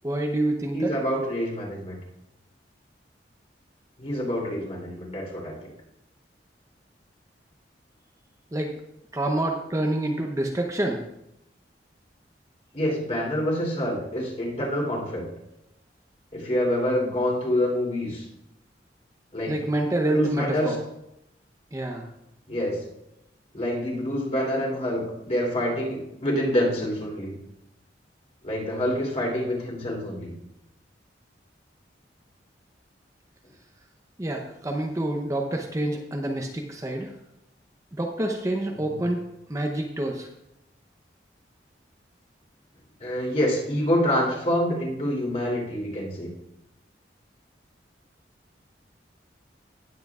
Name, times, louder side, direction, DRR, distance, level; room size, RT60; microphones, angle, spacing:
voice 1, 0.0-0.9 8.5-8.7 9.1-11.0 19.5-20.8 21.7-22.1 34.2-37.1 38.0-39.2 39.5-40.3, right 1 dB, 20° right, 2 dB, 0.7 m, -27 dB
voice 2, 0.7-2.0 4.0-5.7 12.7-15.2 16.3-18.2 19.3-19.6 20.1-20.7 22.5-22.8 23.5-27.3 28.4-30.3 38.8-38.9 43.0-46.3, equal, 35° left, -2 dB, 2.9 m, -26 dB
18.0 x 7.7 x 2.4 m, 0.84 s
head